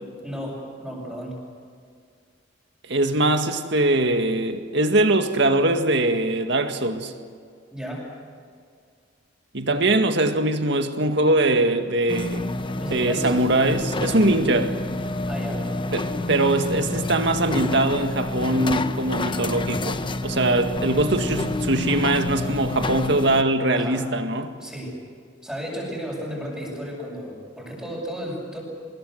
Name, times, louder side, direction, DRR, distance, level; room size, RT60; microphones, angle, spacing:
voice 1, 0.2-1.3 7.7-8.1 12.8-13.4 15.3-15.7 23.7-24.1 24.6-25.0 25.4-28.6, equal, 5° right, 7.9 m, -33 dB
voice 2, 2.9-7.1 9.5-12.5 12.9-14.7 15.9-24.5, right 2 dB, 65° right, 2.0 m, -22 dB
sound 1, 12.1-23.4, left 2 dB, 25° left, 0.8 m, -28 dB
25.0 x 22.0 x 8.1 m
head